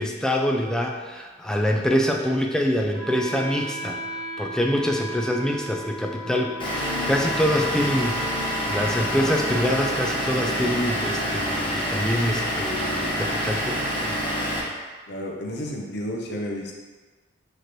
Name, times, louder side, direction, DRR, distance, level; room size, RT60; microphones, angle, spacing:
voice 1, 0.0-14.1, equal, 5° left, 1 dB, 0.3 m, -25 dB
Wind instrument woodwind instrument, 2.9-12.9, left 1 dB, 85° left, 1.3 m, -37 dB
Vehicle / Engine, 6.6-14.6, equal, 25° left, 0.8 m, -27 dB
voice 2, 15.1-16.7, equal, 60° left, 0 dB, 0.6 m, -31 dB
5.0 x 3.0 x 3.0 m, 1.3 s
head